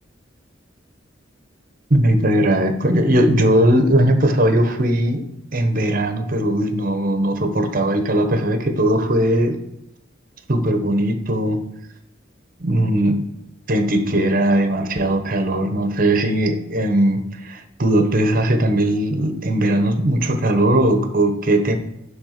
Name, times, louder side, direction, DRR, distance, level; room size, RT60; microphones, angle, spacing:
voice 1, 1.9-5.3 5.5-9.6 10.5-11.7 12.6-13.3 13.7-21.8, right 1 dB, 50° right, 1.2 m, -19 dB
10.5 x 3.6 x 6.7 m
head